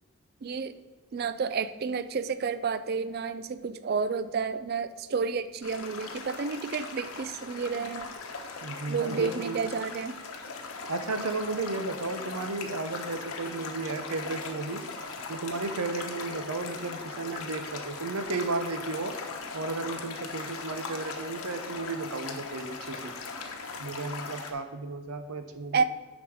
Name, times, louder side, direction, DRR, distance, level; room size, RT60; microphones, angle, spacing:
voice 1, 0.4-0.7 1.1-8.1 8.9-10.2 25.7-25.8, right 5 dB, 45° right, 13 dB, 0.4 m, -30 dB
sound 1, 5.6-24.5, left 4 dB, 90° left, 1.0 m, -39 dB
voice 2, 8.6-9.7 10.9-14.8 15.3-19.1 19.5-23.1 23.8-25.8, right 3 dB, 85° right, 8 dB, 0.8 m, -34 dB
6.9 x 5.2 x 6.4 m, 1.2 s
head